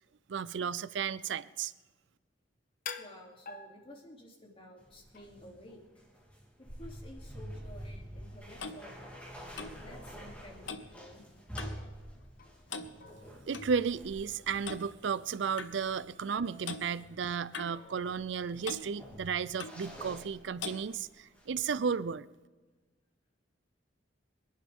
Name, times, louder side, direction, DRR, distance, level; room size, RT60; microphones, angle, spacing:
voice 1, 0.3-1.7 13.5-22.3, right 6 dB, 70° right, 0.5 m, -34 dB
sound 1, 2.9-4.5 5.1-5.6 9.5-9.6 10.2-10.5 11.8-12.8 13.0-14.1 14.5-14.8 16.3-17.3 17.7-18.4, left 6 dB, 50° left, 1.0 m, -50 dB
voice 2, 3.0-5.8 6.6-9.2 9.8-11.3, left 1 dB, 30° left, 2.8 m, -52 dB
sound 2, 4.8-21.1 21.3-21.8, equal, 10° left, 3.2 m, -48 dB
Clock, 8.0-11.9 12.2-12.4 12.7-13.7 14.7-14.9 15.6-15.7 16.6-16.9 17.5-18.4 18.6-18.9 19.6-19.8 20.6-20.8, left 5 dB, 85° left, 1.0 m, -43 dB
25.5 x 11.0 x 3.6 m
head